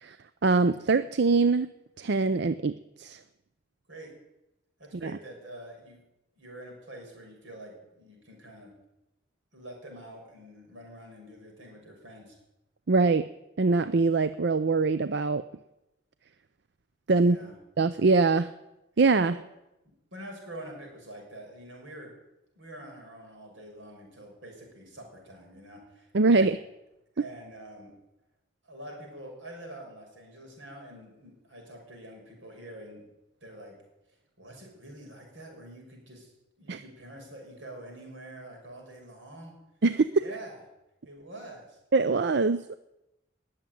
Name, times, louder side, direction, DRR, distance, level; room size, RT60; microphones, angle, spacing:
voice 1, 0.4-1.7 2.0-3.2 5.0-5.1 12.9-13.3 13.6-15.4 17.1-17.4 17.8-18.5 19.0-19.4 26.1-26.6 36.7-36.8 39.8-40.1 41.9-42.8, right 3 dB, 60° right, 13 dB, 0.5 m, -23 dB
voice 2, 4.8-6.0 6.4-8.7 9.5-12.4 17.2-17.6 19.2-19.4 20.1-22.1 22.5-26.5 27.1-27.9 28.6-33.1 33.4-33.8 34.4-36.3 36.6-39.5 40.2-40.6 41.0-41.8, right 1 dB, 80° right, 1 dB, 6.1 m, -46 dB
20.5 x 7.4 x 9.2 m, 0.93 s
head